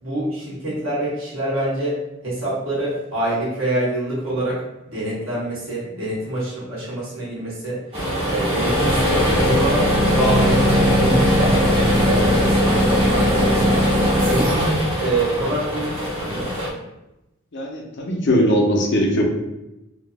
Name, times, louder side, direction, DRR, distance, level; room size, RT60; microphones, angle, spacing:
voice 1, 0.0-11.6 11.9-13.8 14.2-16.5, right 1 dB, 75° right, -8 dB, 1.4 m, -26 dB
sound 1, 7.9-16.7, equal, 30° right, 0.9 m, -19 dB
voice 2, 17.5-19.2, equal, 60° left, 1 dB, 0.6 m, -19 dB
2.8 x 2.1 x 3.3 m, 0.92 s
head